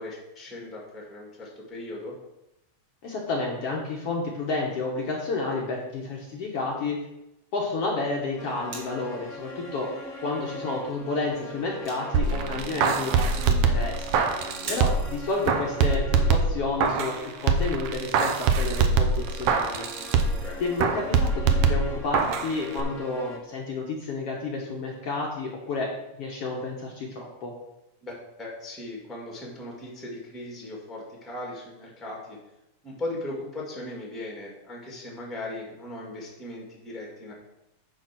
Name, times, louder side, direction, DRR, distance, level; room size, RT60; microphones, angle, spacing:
voice 1, 0.0-2.1 14.6-14.7 20.4-20.6 28.0-32.4 32.8-37.3, left 1 dB, ahead, -2 dB, 1.5 m, -38 dB
voice 2, 3.0-7.0 7.5-9.9 10.2-14.3 14.7-19.9 20.6-25.9 26.2-27.5, left 3 dB, 60° left, -2 dB, 1.9 m, -30 dB
sound 1, 8.4-17.6 19.2-23.4, left 1 dB, 35° left, 1.2 m, -41 dB
sound 2, 8.7-9.2 10.0-10.1 10.7-10.8 11.0-11.1 11.4-12.4 12.7-12.8 14.0-14.2 14.7-15.3 15.8-15.9, right 2 dB, 35° right, 2.0 m, -40 dB
sound 3, 12.1-15.1 15.5-17.2 17.5-20.5 20.8-22.5 22.8-22.9, right 5 dB, 75° right, 1.4 m, -23 dB
9.5 x 4.6 x 6.1 m, 0.91 s
omnidirectional pair, 3.5 m